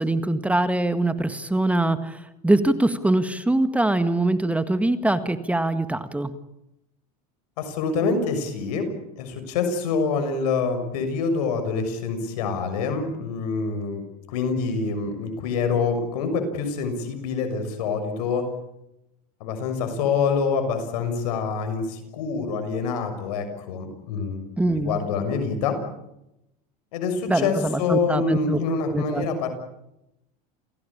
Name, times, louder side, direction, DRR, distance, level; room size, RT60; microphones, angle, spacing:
voice 1, 0.0-6.3 24.6-25.0 27.3-29.3, right 2 dB, 5° right, 10 dB, 1.7 m, -23 dB
voice 2, 7.6-8.9 9.2-14.0 14.3-18.5 19.4-24.5 24.8-25.8 26.9-29.5, left 5 dB, 80° left, 7 dB, 6.6 m, -26 dB
29.0 x 17.5 x 8.8 m, 0.86 s
supercardioid pair, 110°, 20 cm